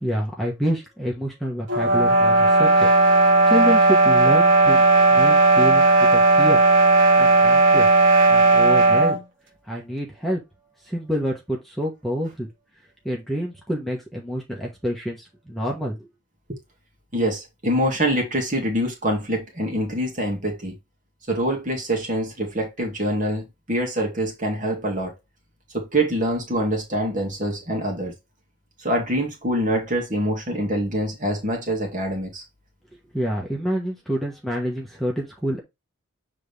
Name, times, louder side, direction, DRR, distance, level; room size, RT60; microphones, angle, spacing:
voice 1, 0.0-2.9 3.5-4.8 5.1-6.6 7.2-7.9 8.3-9.2 9.7-10.4 10.8-12.5 13.0-16.1 33.1-35.6, equal, ahead, 1.3 m, -27 dB
sound 1, 1.7-9.2, right 3 dB, 60° right, 1.6 m, -16 dB
voice 2, 17.1-20.7 21.3-25.1 25.7-28.1 28.8-32.4, right 1 dB, 40° right, 2.2 m, -25 dB
7.7 x 3.7 x 3.4 m
head